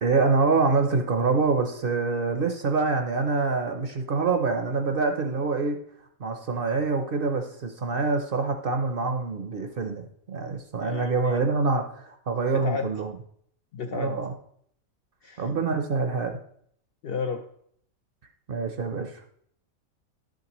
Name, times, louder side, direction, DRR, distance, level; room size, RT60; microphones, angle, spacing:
voice 1, 0.0-5.8 6.2-13.1 13.9-14.3 15.4-16.4 18.5-19.2, right 4 dB, 50° right, 6 dB, 0.7 m, -26 dB
voice 2, 10.8-11.4 12.5-12.9 13.7-14.2 15.2-15.5 17.0-17.4, left 5 dB, 65° left, 5 dB, 0.6 m, -32 dB
11.5 x 6.5 x 3.0 m, 0.66 s
omnidirectional pair, 1.4 m